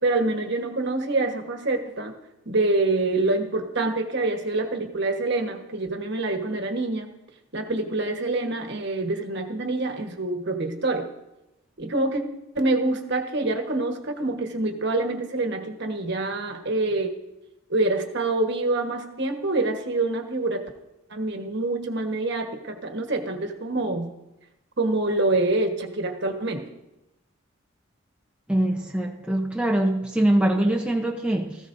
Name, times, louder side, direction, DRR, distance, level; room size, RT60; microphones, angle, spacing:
voice 1, 0.0-2.1 2.4-7.1 7.5-11.1 11.8-12.2 12.5-17.1 17.7-20.6 21.1-24.1 24.8-26.6, right 2 dB, 55° right, 4 dB, 1.3 m, -26 dB
voice 2, 28.5-31.6, right 1 dB, 5° right, 0 dB, 0.7 m, -23 dB
17.0 x 15.0 x 2.6 m, 0.95 s
head